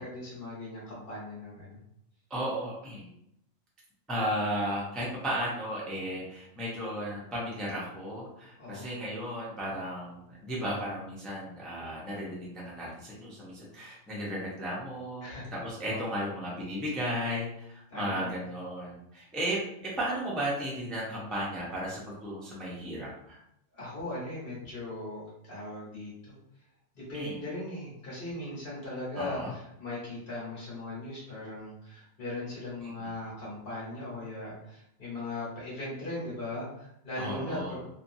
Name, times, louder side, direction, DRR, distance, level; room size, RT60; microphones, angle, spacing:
voice 1, 0.0-1.8 8.6-8.9 15.2-15.5 15.8-16.0 17.9-18.3 23.7-26.3 26.9-37.9, left 2 dB, 45° left, -7 dB, 1.3 m, -39 dB
voice 2, 2.3-3.1 4.1-23.4 27.1-27.4 29.1-29.5 32.8-33.1 37.2-37.8, equal, ahead, -5 dB, 0.4 m, -35 dB
2.7 x 2.5 x 2.6 m, 0.79 s
omnidirectional pair, 1.4 m